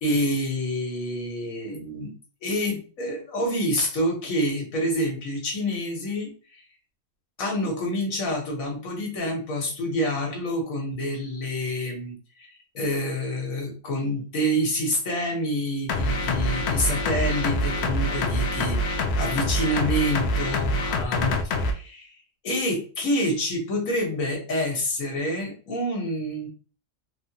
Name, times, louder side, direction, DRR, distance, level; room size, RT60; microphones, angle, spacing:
voice 1, 0.0-2.1 2.4-6.6 7.4-22.1 22.4-26.5, equal, 80° left, 1 dB, 1.5 m, -27 dB
sound 1, 15.9-21.7, left 1 dB, 65° left, 0.7 m, -25 dB
3.6 x 2.1 x 2.8 m, 0.38 s
omnidirectional pair, 1.4 m